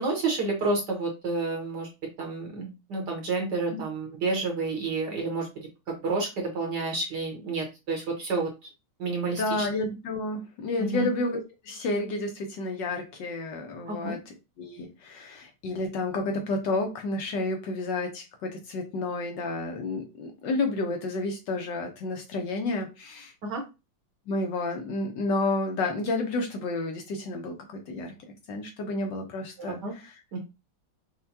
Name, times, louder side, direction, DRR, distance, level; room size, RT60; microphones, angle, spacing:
voice 1, 0.0-1.9 2.2-8.5 9.0-9.7 10.8-11.1 13.9-14.2 23.4-23.6 29.6-30.0 30.3-30.4, right 3 dB, 60° right, 1 dB, 1.4 m, -30 dB
voice 2, 9.4-23.3 24.3-28.1 28.5-30.2, left 2 dB, 65° left, 4 dB, 1.2 m, -31 dB
5.7 x 2.2 x 2.7 m, 0.26 s
omnidirectional pair, 2.3 m